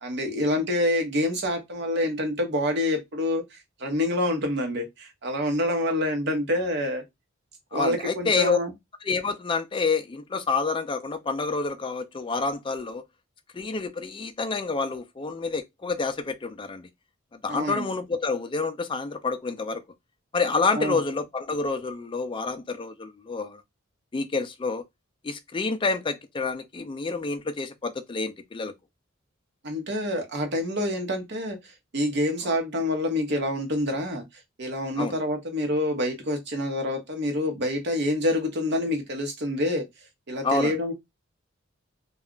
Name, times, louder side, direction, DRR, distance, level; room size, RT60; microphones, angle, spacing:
voice 1, 0.0-7.0 7.7-8.7 17.5-17.9 20.7-21.0 29.6-31.6 31.9-34.2 34.6-39.8 40.3-40.9, left 1 dB, 55° right, 0.9 m, -27 dB
voice 2, 7.7-8.6 9.0-13.0 13.5-16.9 17.4-19.8 20.3-23.6 24.1-24.8 25.2-28.7 32.4-32.5 35.0-35.2 40.4-40.8, left 4 dB, 25° left, 0.4 m, -28 dB
2.3 x 2.1 x 3.6 m
head